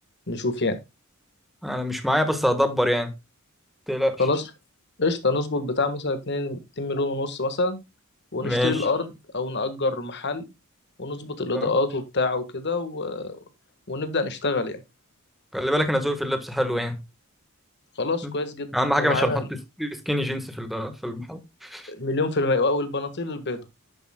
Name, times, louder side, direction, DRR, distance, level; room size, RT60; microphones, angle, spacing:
voice 1, 0.3-0.8 4.2-4.4 5.0-7.8 8.3-9.1 9.3-10.4 11.0-13.4 13.9-14.8 18.0-18.7 19.0-19.4 21.9-23.6, left 3 dB, 55° left, 1.6 m, -26 dB
voice 2, 1.6-3.1 3.9-4.2 8.4-8.9 11.5-11.7 15.5-17.0 18.2-18.3 18.7-19.4 19.8-21.9, equal, ahead, 1.4 m, -25 dB
11.0 x 8.1 x 2.3 m
head